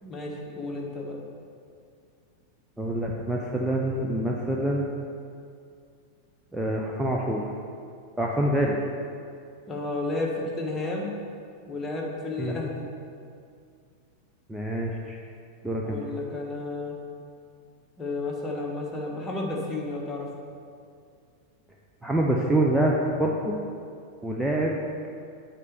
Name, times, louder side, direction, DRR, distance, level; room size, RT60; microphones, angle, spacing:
voice 1, 0.0-1.2 9.7-11.1 11.7-12.9 15.8-17.0 18.0-20.3, left 2 dB, 20° left, -1 dB, 1.5 m, -32 dB
voice 2, 2.8-4.9 6.5-7.5 8.2-8.8 12.4-12.7 14.5-15.2 15.6-16.0 22.0-23.6 24.2-24.8, right 1 dB, 5° right, -2 dB, 0.7 m, -26 dB
8.3 x 4.4 x 6.9 m, 2.3 s
figure-of-eight pair, 90°, 0 cm